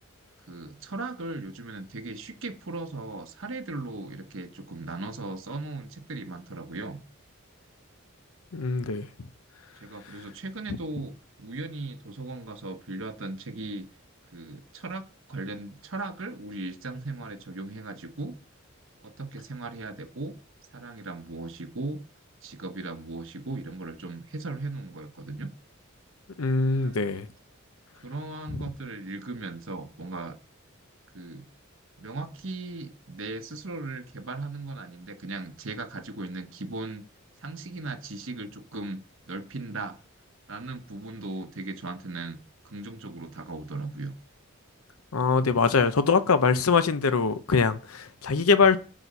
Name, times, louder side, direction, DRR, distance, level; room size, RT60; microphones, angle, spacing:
voice 1, 0.5-7.0 9.8-13.9 14.3-18.3 19.0-20.3 20.7-22.0 22.4-25.5 26.8-27.0 28.0-30.4 31.1-31.5 32.0-37.0 37.4-40.0 40.5-42.4 42.6-44.1 45.6-45.7, right 2 dB, 65° right, 1.1 m, -37 dB
voice 2, 8.5-9.1 10.7-10.8 26.4-27.3 45.1-48.8, left 4 dB, 90° left, 0.7 m, -23 dB
9.0 x 4.3 x 6.7 m
head